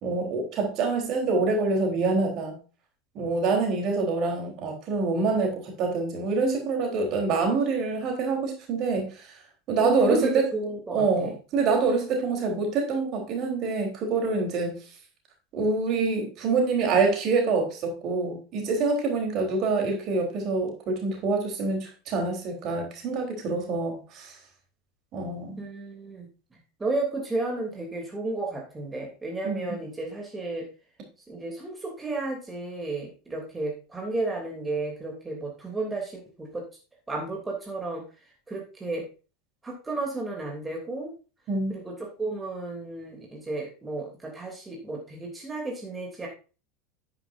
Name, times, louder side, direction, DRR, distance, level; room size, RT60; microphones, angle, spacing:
voice 1, 0.0-2.6 3.2-9.4 9.7-10.5 10.9-14.7 15.5-24.3 25.1-25.6 29.4-29.8 41.5-41.7, right 4 dB, 45° right, 3.7 m, -26 dB
voice 2, 9.8-11.3 25.6-30.7 31.3-36.7 37.1-38.0 38.5-39.1 39.6-41.1 41.7-46.3, right 2 dB, 15° right, 2.9 m, -33 dB
10.0 x 9.7 x 2.6 m
figure-of-eight pair, 80°, 0 cm